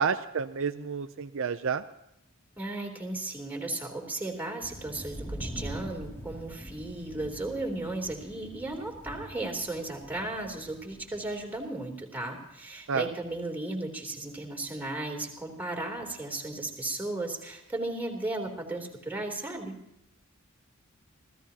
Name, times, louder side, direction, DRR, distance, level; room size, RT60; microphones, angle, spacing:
voice 1, 0.0-1.8 12.9-13.1, right 6 dB, 65° right, 10 dB, 0.5 m, -29 dB
voice 2, 2.6-19.8, right 2 dB, 10° right, 0 dB, 3.3 m, -35 dB
sound 1, 4.6-11.7, equal, 10° left, 2.4 m, -43 dB
27.5 x 16.5 x 2.9 m, 0.80 s
head